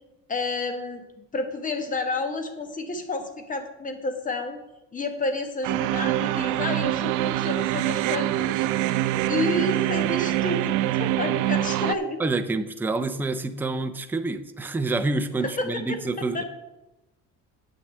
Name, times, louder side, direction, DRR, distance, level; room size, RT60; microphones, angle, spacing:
voice 1, 0.3-1.0 1.3-4.6 4.9-8.7 9.3-12.2 15.4-16.4, left 2 dB, 25° left, 6 dB, 1.4 m, -30 dB
sound 1, 5.6-11.9, right 14 dB, 80° right, 0.6 m, -25 dB
voice 2, 12.2-16.4, right 3 dB, 5° right, 8 dB, 0.5 m, -27 dB
8.2 x 6.3 x 7.4 m, 0.99 s
cardioid pair, 145°, 30 cm